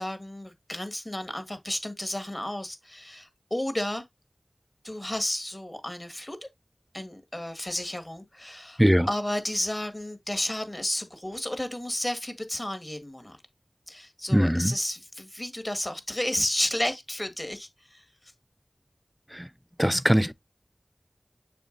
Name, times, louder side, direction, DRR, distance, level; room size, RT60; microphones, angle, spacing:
voice 1, 0.0-4.1 4.8-6.5 6.9-13.4 13.9-18.3, left 1 dB, 30° left, 1.7 m, -32 dB
voice 2, 14.3-14.7 19.3-19.5 19.8-20.3, equal, 5° right, 0.4 m, -21 dB
6.8 x 5.7 x 2.6 m
wide cardioid pair, 50°, 0 cm